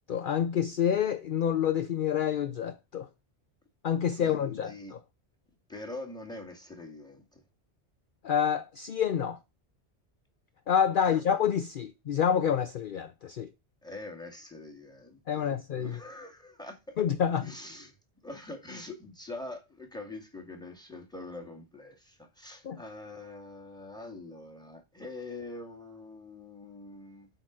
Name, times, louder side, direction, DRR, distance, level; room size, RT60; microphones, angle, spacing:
voice 1, 0.1-3.1 3.8-5.0 8.2-9.4 10.7-13.5 15.3-16.0 17.0-17.5 22.6-22.8, left 8 dB, 55° left, 0.7 m, -28 dB
voice 2, 4.1-5.0 5.7-7.4 11.0-11.3 13.8-17.0 17.4-18.0 18.2-27.3, left 2 dB, 5° left, 2.1 m, -44 dB
8.0 x 4.6 x 6.3 m
omnidirectional pair, 1.1 m